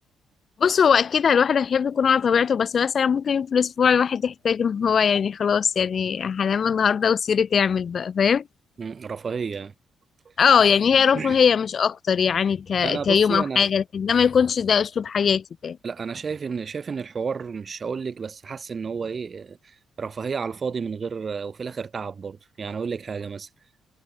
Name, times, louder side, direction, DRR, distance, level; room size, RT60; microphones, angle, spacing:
voice 1, 0.6-8.4 10.4-15.8, left 7 dB, 50° left, 1.7 m, -21 dB
voice 2, 8.8-9.7 10.3-10.4 11.1-11.4 12.8-13.6 15.8-23.5, right 5 dB, 40° right, 5.8 m, -31 dB
cardioid pair, 90°, 0 cm